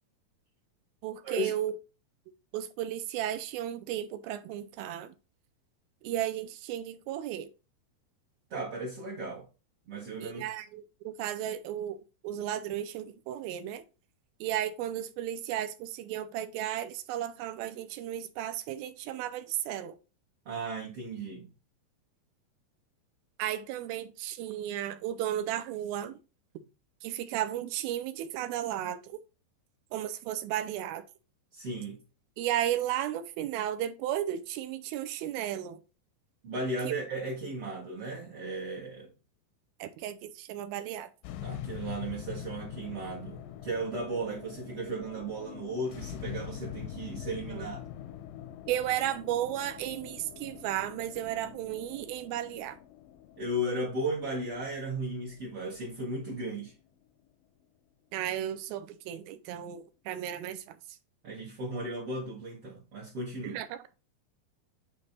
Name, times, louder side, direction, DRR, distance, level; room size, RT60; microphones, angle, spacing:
voice 1, 1.0-1.8 2.5-5.1 6.0-7.5 10.2-13.8 14.4-20.0 23.4-26.2 27.0-29.2 29.9-31.1 32.4-35.8 36.8-37.0 39.8-41.1 47.5-47.7 48.7-52.8 58.1-60.8 63.4-63.8, right 11 dB, 80° right, 2.4 m, -34 dB
voice 2, 8.5-9.5 9.9-10.4 20.5-21.5 31.5-32.0 36.4-39.1 41.4-47.8 53.4-56.7 61.2-63.6, right 1 dB, 50° right, 1.9 m, -35 dB
sound 1, 41.2-57.6, left 10 dB, 80° left, 2.1 m, -44 dB
8.9 x 3.3 x 4.0 m
omnidirectional pair, 4.5 m